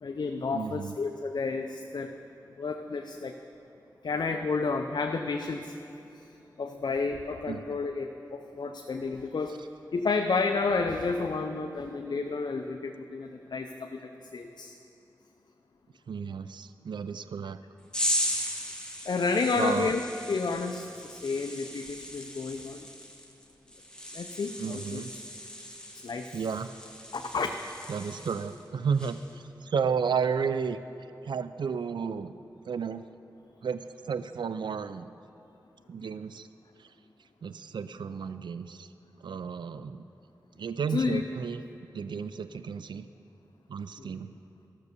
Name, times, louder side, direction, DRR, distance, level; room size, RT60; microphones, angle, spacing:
voice 1, 0.0-2.1 2.6-3.3 4.0-5.7 6.6-9.6 9.9-14.7 19.1-20.0 20.3-22.8 24.1-25.0 26.0-26.3 27.1-27.5 40.9-41.2 44.0-44.1, left 4 dB, 65° left, 4 dB, 0.5 m, -31 dB
voice 2, 0.5-0.9 7.5-7.6 16.1-17.6 19.6-19.9 24.6-25.1 26.3-26.7 27.9-30.8 31.2-32.3 32.7-33.1 33.6-35.1 35.9-36.5 37.4-38.9 39.2-40.0 40.6-41.6 41.9-43.1 43.7-44.3, right 6 dB, 75° right, 12 dB, 0.4 m, -32 dB
sound 1, 17.9-28.6 29.0-29.3, equal, 10° left, 1.4 m, -37 dB
13.5 x 6.7 x 6.7 m, 2.8 s
cardioid pair, 45°, 8 cm